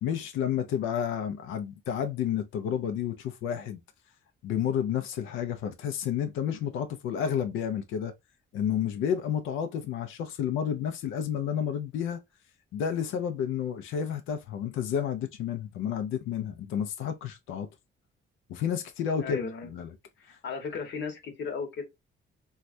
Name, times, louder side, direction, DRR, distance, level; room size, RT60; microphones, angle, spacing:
voice 1, 0.0-3.8 4.4-8.1 8.5-12.2 12.7-17.7 18.5-19.9, left 8 dB, 90° left, 0.5 m, -31 dB
voice 2, 19.2-19.7 20.2-21.8, left 5 dB, 65° left, 1.1 m, -35 dB
3.1 x 2.3 x 2.5 m
cardioid pair, 90°, 20 cm